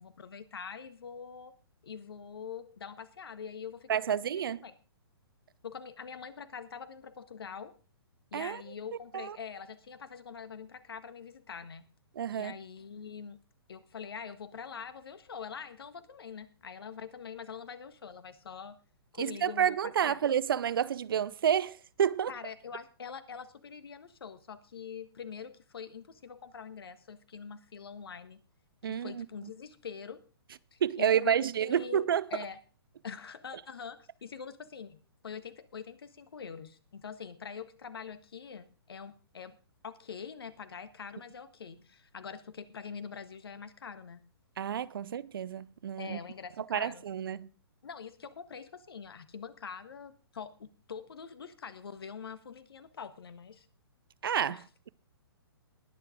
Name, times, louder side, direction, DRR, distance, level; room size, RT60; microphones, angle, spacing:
voice 1, 0.0-1.5 1.8-3.9 4.2-4.7 5.6-7.7 8.3-11.8 12.3-13.4 13.7-18.8 19.1-20.2 22.3-28.4 28.8-30.2 30.7-32.0 32.3-32.6 33.0-39.6 39.8-44.2 46.0-47.0 47.8-53.7 54.5-54.6, left 6 dB, 65° left, 1.4 m, -44 dB
voice 2, 3.9-4.6 8.3-8.6 9.1-9.4 12.2-12.5 19.2-22.3 28.8-29.3 30.8-32.3 44.6-46.2 46.6-47.5 54.2-54.9, right 9 dB, 60° right, 0.6 m, -30 dB
20.0 x 7.4 x 3.7 m
figure-of-eight pair, 125°, 13 cm